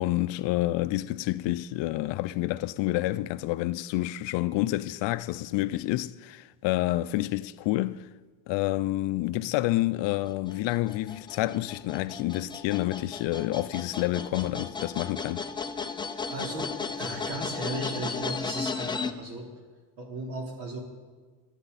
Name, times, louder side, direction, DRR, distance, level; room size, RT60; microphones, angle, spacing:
voice 1, 0.0-8.1 8.5-15.5, left 17 dB, 65° left, 0.5 m, -28 dB
sound 1, 10.1-19.1, left 5 dB, 10° left, 0.4 m, -35 dB
voice 2, 16.3-19.5 20.0-20.8, right 1 dB, 60° right, 3.6 m, -36 dB
23.5 x 9.9 x 4.1 m
cardioid pair, 145°, 48 cm